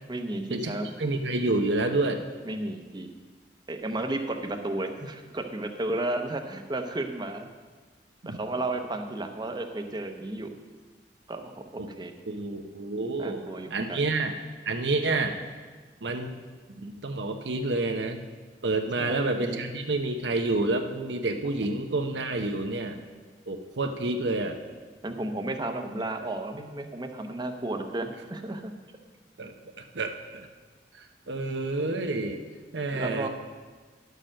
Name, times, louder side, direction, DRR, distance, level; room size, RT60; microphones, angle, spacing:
voice 1, 0.1-0.9 2.4-3.1 3.7-7.5 8.3-10.6 11.3-12.1 13.2-14.0 19.0-19.6 25.0-28.7 32.9-33.3, right 2 dB, 25° right, 6 dB, 0.8 m, -33 dB
voice 2, 1.0-2.2 8.2-8.4 11.8-11.9 12.3-14.3 14.6-15.3 16.0-16.4 16.8-18.2 18.6-23.0 23.5-24.6 29.4-29.5 29.9-30.5 30.9-32.4 32.7-33.3, right 2 dB, 80° right, 5 dB, 0.9 m, -29 dB
10.5 x 6.7 x 6.4 m, 1.4 s
head